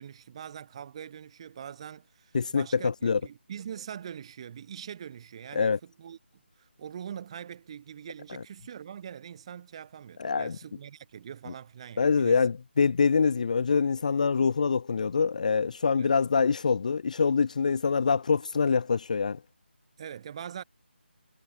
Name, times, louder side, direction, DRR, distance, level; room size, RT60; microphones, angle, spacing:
voice 1, 0.0-6.2 6.6-12.4 16.0-16.1 20.0-20.6, right 8 dB, 30° right, 3.2 m, -43 dB
voice 2, 2.3-3.2 5.5-5.8 8.3-8.4 10.2-10.6 12.0-19.4, left 5 dB, 40° left, 0.5 m, -25 dB
figure-of-eight pair, 160°, 6 cm